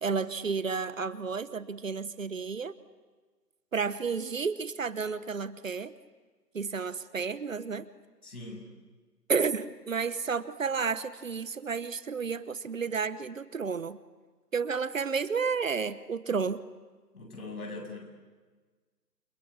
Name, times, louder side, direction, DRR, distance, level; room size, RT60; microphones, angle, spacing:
voice 1, 0.0-2.7 3.7-5.9 6.5-7.9 9.3-14.0 14.5-16.6, right 5 dB, 50° right, 15 dB, 1.0 m, -31 dB
voice 2, 8.2-8.6 17.1-18.0, left 2 dB, 60° left, 2 dB, 7.9 m, -41 dB
29.0 x 24.5 x 8.5 m, 1.4 s
figure-of-eight pair, 150°, 50 cm